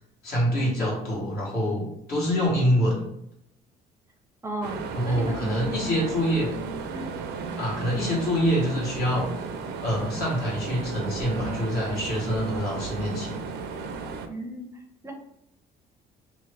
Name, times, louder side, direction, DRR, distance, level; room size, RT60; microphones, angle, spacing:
voice 1, 0.2-3.0 4.9-6.5 7.6-9.3 9.8-13.4, equal, 65° left, -4 dB, 1.3 m, -25 dB
voice 2, 4.4-5.6 6.9-7.1 14.3-14.7 15.0-15.1, right 1 dB, 15° right, 1 dB, 0.5 m, -35 dB
sound 1, 4.6-14.3, right 5 dB, 80° right, 0.4 m, -34 dB
2.8 x 2.0 x 3.3 m, 0.78 s
cardioid pair, 110°, 17 cm